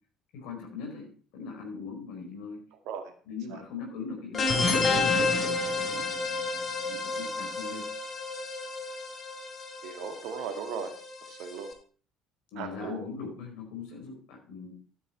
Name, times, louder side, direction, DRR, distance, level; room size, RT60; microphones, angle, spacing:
voice 1, 0.3-2.6 3.3-6.1 6.8-7.8 12.5-14.7, left 5 dB, 60° left, 1 dB, 4.9 m, -40 dB
sound 1, 4.3-11.7, left 3 dB, 40° left, 3.4 m, -30 dB
voice 2, 9.8-10.9 11.3-11.7 12.6-13.0, right 6 dB, 60° right, 6 dB, 2.0 m, -37 dB
12.5 x 8.7 x 4.6 m, 0.42 s
figure-of-eight pair, 55°, 0 cm